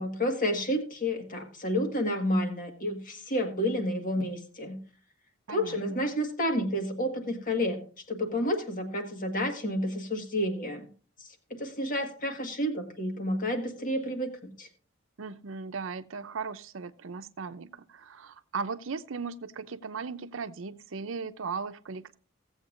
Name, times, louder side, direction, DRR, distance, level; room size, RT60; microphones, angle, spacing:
voice 1, 0.0-4.8 5.5-7.8 8.1-10.9 11.2-14.7, left 1 dB, 45° left, 1.7 m, -30 dB
voice 2, 5.5-6.1 15.2-22.2, right 5 dB, 80° right, 0.6 m, -37 dB
16.5 x 7.9 x 2.5 m
head